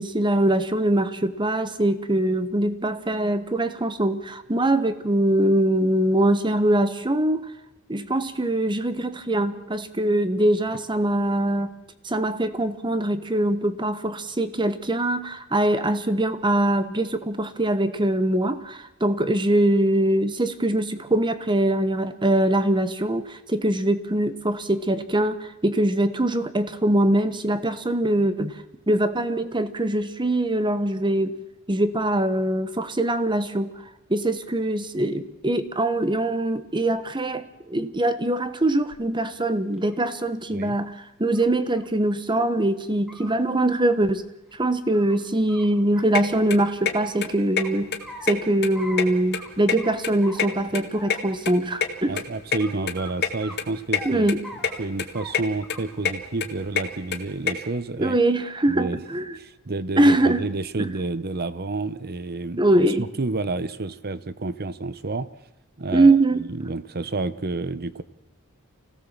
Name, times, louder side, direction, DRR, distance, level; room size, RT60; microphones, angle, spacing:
voice 1, 0.0-7.4 7.9-11.7 12.0-28.6 28.9-31.4 31.7-33.7 34.1-44.3 44.5-47.9 48.2-52.2 54.0-54.4 58.0-59.4 60.0-60.5 60.8-60.9 62.6-63.1 65.9-66.4, right 1 dB, 20° right, 12 dB, 1.2 m, -23 dB
sound 1, 38.9-39.0 39.6-40.3 41.3-41.5 41.8-41.9 42.3-42.4 42.9-43.4 44.5-45.2 45.5-45.7 46.0-47.2 47.6-48.4 48.8-49.0 49.3-49.5 49.8-50.6 50.9-51.3 51.7-51.8 52.1-52.2 52.6-52.7 53.0-53.1 53.4-54.1 54.4-54.8 55.2-55.3 55.6-56.1 56.4-56.9 57.7-58.2, left 1 dB, ahead, 2.6 m, -43 dB
sound 2, 46.1-46.2 46.5-46.9 47.2-47.3 47.6-47.7 47.9-48.7 48.9-50.1 50.4-51.9 52.2-52.3 52.5-52.6 52.9-53.0 53.2-53.3 53.6-54.0 54.3-54.7 55.0-55.4 55.7-57.5, left 6 dB, 50° left, 2.1 m, -25 dB
voice 2, 52.1-54.3 54.8-58.2 58.7-59.0 59.4-62.6 63.0-65.3 65.8-66.2 66.5-68.0, right 3 dB, 45° right, 16 dB, 0.9 m, -29 dB
25.5 x 17.0 x 7.4 m, 0.93 s
head